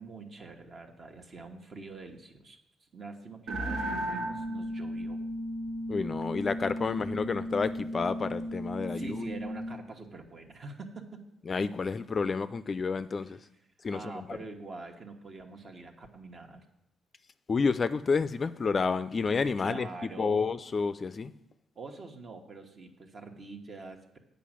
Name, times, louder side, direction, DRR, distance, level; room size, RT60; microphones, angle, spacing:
voice 1, 0.0-5.2 6.4-6.5 8.9-11.2 13.2-13.3 13.9-16.6 19.6-20.5 21.7-24.2, right 3 dB, 45° right, 4 dB, 1.3 m, -45 dB
sound 1, 3.5-9.8, equal, 80° right, 1.3 m, -35 dB
voice 2, 5.9-9.3 11.5-13.4 13.8-14.4 17.5-19.9 20.2-21.3, left 4 dB, 40° left, 13 dB, 0.4 m, -30 dB
8.4 x 5.3 x 7.4 m, 0.81 s
cardioid pair, 90°, 0 cm